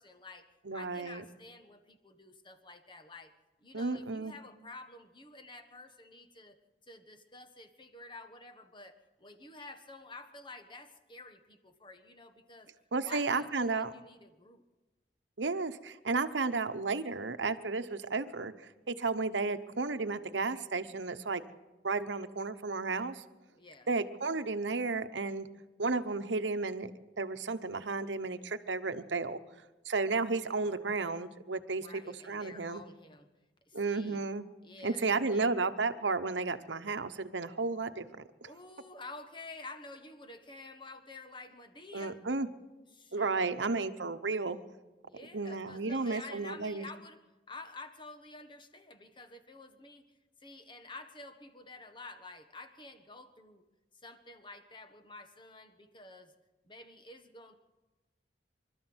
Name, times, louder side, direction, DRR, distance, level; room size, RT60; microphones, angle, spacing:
voice 1, 0.0-3.3 3.6-6.6 6.9-12.7 13.0-14.6 23.6-23.9 30.6-31.1 31.8-33.3 33.7-34.2 34.6-35.5 38.4-42.2 42.9-43.8 45.0-47.2 47.5-50.0 50.4-53.6 54.0-56.3 56.6-57.5, left 3 dB, 25° left, 8 dB, 1.5 m, -50 dB
voice 2, 0.7-1.2 3.7-4.3 12.9-13.9 15.4-21.4 21.8-23.2 23.9-25.5 25.8-26.9 27.2-29.4 29.9-31.9 32.2-32.8 33.7-34.5 34.8-38.1 41.9-42.5 43.1-44.6 45.3-46.9, right 3 dB, 90° right, 10 dB, 1.0 m, -33 dB
25.5 x 13.0 x 8.0 m, 1.1 s
head